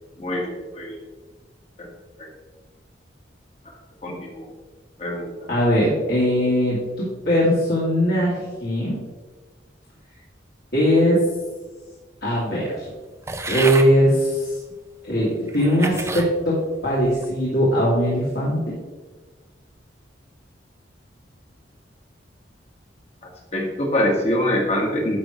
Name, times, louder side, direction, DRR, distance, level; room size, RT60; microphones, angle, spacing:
voice 1, 0.2-1.0 1.8-1.9 2.2-2.3 4.0-4.5 5.0-5.3 23.5-25.2, left 1 dB, 35° left, 0 dB, 1.7 m, -24 dB
voice 2, 5.5-9.0 10.7-11.2 12.2-12.9 13.5-14.6 15.0-16.6 16.8-18.7, equal, 55° left, -7 dB, 2.5 m, -20 dB
sound 1, 13.3-13.9 14.7-14.8 15.5-16.3 16.9-17.3, right 3 dB, 15° right, 0.6 m, -30 dB
11.0 x 6.4 x 3.2 m, 1.3 s
head